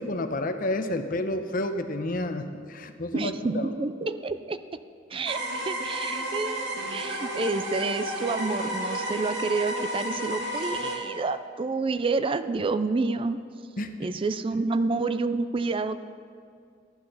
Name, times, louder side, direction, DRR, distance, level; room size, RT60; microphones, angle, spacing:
voice 1, 0.0-3.7 13.8-14.1, left 1 dB, 50° left, 8 dB, 0.8 m, -30 dB
voice 2, 3.1-4.8 5.1-13.4 14.0-16.0, right 3 dB, 30° right, 12 dB, 0.4 m, -29 dB
sound 1, 5.3-10.9, right 1 dB, 75° right, 2.6 m, -32 dB
14.5 x 10.5 x 5.5 m, 2.3 s
head